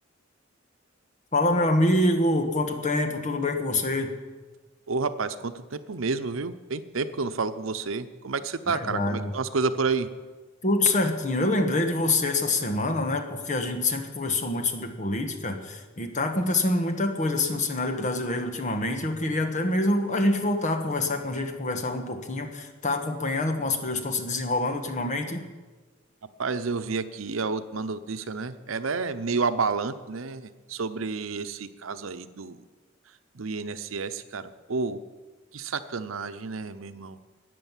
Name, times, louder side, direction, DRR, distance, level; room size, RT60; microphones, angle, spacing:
voice 1, 1.3-4.1 8.7-9.3 10.6-25.4, left 2 dB, 40° left, 6 dB, 1.5 m, -26 dB
voice 2, 4.9-10.1 26.4-32.6 33.3-34.4 34.7-35.0 35.5-37.2, right 4 dB, 90° right, 11 dB, 0.8 m, -30 dB
14.0 x 9.3 x 7.3 m, 1.3 s
head